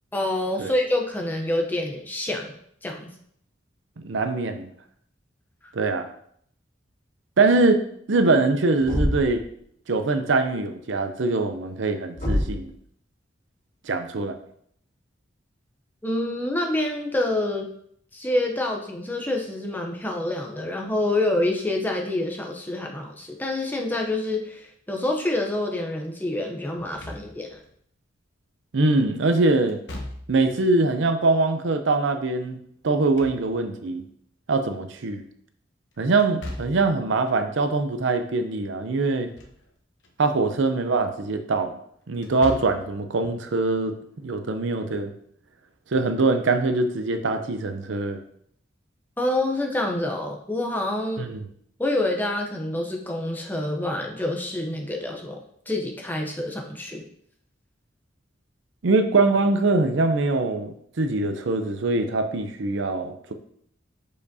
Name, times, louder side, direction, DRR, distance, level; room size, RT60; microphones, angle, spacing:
voice 1, 0.1-2.5 2.8-3.1 16.0-17.7 18.1-27.6 49.2-51.3 51.8-55.4 55.7-57.0, left 1 dB, 10° left, 1 dB, 0.7 m, -27 dB
voice 2, 4.0-4.7 5.7-6.1 7.4-7.8 8.1-9.4 9.9-12.7 13.9-14.4 28.7-29.8 30.3-32.6 32.8-34.0 34.5-35.2 36.0-39.3 40.2-41.8 42.1-44.0 44.2-45.1 45.9-48.2 51.2-51.4 58.8-63.3, right 3 dB, 75° right, 7 dB, 0.6 m, -23 dB
Thump thud, 8.8-9.5 12.2-12.7, equal, 40° left, 2.6 m, -25 dB
Slam / Thump thud, 26.8-27.7 29.7-30.6 32.8-33.9 36.2-37.0 39.1-39.7 40.0-40.1 42.1-43.0, left 1 dB, 65° left, 1.0 m, -39 dB
6.7 x 5.1 x 2.7 m, 0.67 s
head